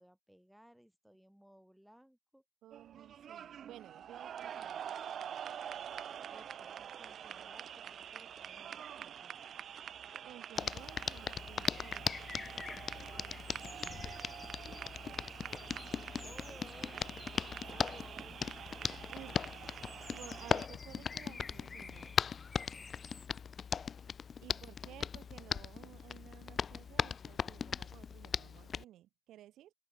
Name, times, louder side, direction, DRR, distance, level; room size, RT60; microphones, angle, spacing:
voice 1, 0.0-2.4 6.3-9.4 16.2-17.2 17.7-18.7 24.5-25.2, equal, ahead, 4.6 m, -60 dB
voice 2, 2.6-5.0 10.2-14.1 16.2-16.6 17.6-18.0 19.1-19.6 20.1-22.2 24.4-29.7, right 13 dB, 90° right, 4.3 m, -55 dB
sound 1, 2.7-20.7, right 9 dB, 55° right, 2.5 m, -46 dB
Hands, 10.6-28.8, left 6 dB, 40° left, 0.7 m, -39 dB
sound 2, 11.6-23.3, left 4 dB, 25° left, 4.3 m, -53 dB
open air
cardioid pair, 145°, 0 cm